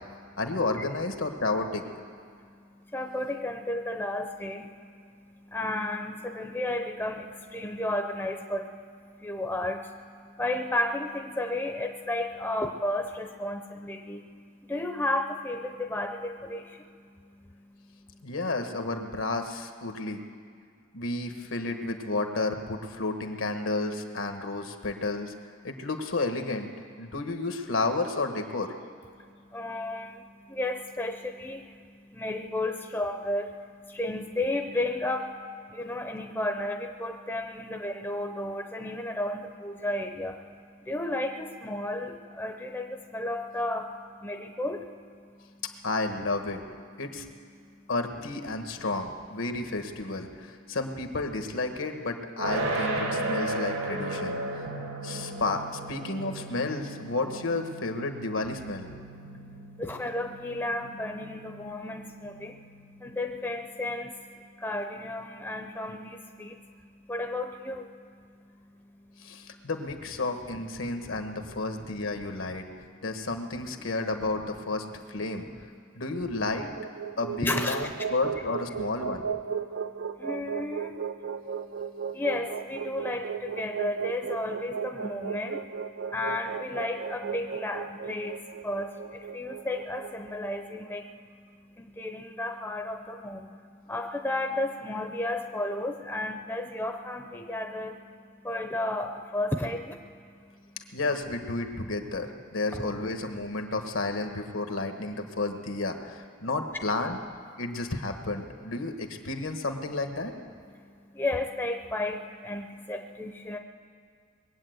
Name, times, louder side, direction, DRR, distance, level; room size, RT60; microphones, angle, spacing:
voice 1, 0.4-1.8 18.2-20.2 20.9-25.3 25.6-26.7 27.0-28.7 45.8-46.6 47.0-47.2 47.9-54.4 55.0-58.9 69.2-72.6 73.0-75.5 75.9-76.8 77.2-79.2 100.9-107.2 107.6-110.3, left 2 dB, 70° left, 5 dB, 1.3 m, -31 dB
voice 2, 2.3-18.2 29.1-45.6 47.6-47.9 50.7-50.8 59.2-69.7 71.0-71.2 72.8-72.9 73.8-73.9 75.8-76.0 77.4-77.8 79.7-100.8 110.8-113.6, left 1 dB, 10° left, 4 dB, 0.6 m, -34 dB
sound 1, 52.4-63.4, right 2 dB, 80° right, 2.0 m, -35 dB
sound 2, 76.4-90.6, right 7 dB, 60° right, 0.4 m, -35 dB
21.0 x 8.7 x 7.9 m, 2.2 s
head